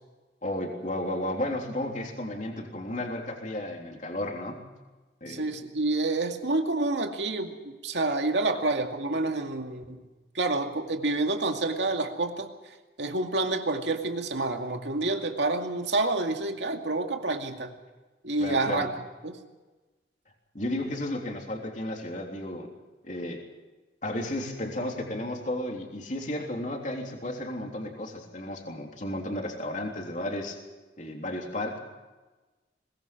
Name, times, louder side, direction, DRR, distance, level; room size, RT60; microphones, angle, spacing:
voice 1, 0.4-4.7 5.2-5.5 18.4-18.9 20.5-22.7 23.0-23.5 24.0-30.6 31.0-31.8, left 1 dB, 45° left, 1 dB, 3.5 m, -33 dB
voice 2, 5.3-10.0 10.3-12.5 13.0-17.7 18.2-18.9 19.2-19.4, right 2 dB, 85° right, 4 dB, 2.3 m, -28 dB
22.5 x 20.5 x 6.1 m, 1.2 s
head